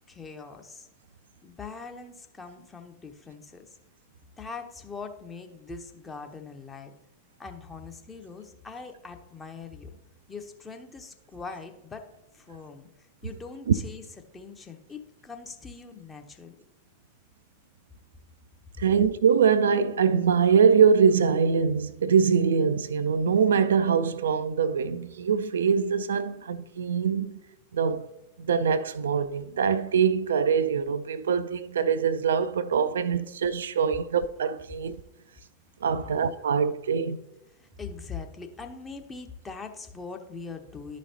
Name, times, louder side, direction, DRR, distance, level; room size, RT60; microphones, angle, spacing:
voice 1, 0.1-0.9 1.4-3.6 4.4-6.9 7.4-9.9 10.3-12.1 12.3-12.9 13.2-14.0 14.3-16.5 36.0-36.1 36.4-36.7 37.6-41.0, left 4 dB, 15° left, 0.8 m, -42 dB
voice 2, 18.8-27.3 27.7-28.1 28.4-35.0 35.8-37.2, right 6 dB, 65° right, 0.3 m, -23 dB
11.0 x 5.1 x 2.8 m
figure-of-eight pair, 90°, 0 cm